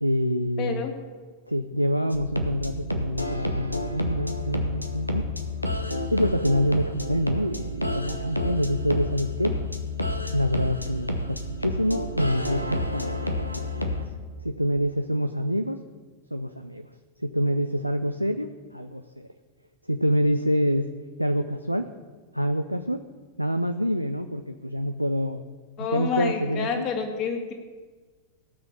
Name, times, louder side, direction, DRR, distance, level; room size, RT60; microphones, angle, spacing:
voice 1, 0.0-0.8 1.5-5.3 6.1-9.5 10.3-14.0 14.4-15.8 16.3-16.9 17.2-18.5 18.7-19.3 19.9-20.9 21.2-21.9 22.3-23.0 23.4-25.4 25.8-26.8, equal, 90° right, 7 dB, 0.5 m, -26 dB
voice 2, 0.6-1.0 25.8-27.5, left 6 dB, 35° left, 3 dB, 2.2 m, -28 dB
sound 1, 2.1-14.1, left 1 dB, 90° left, 1.0 m, -30 dB
17.0 x 6.2 x 7.1 m, 1.4 s
figure-of-eight pair, 90°, 0 cm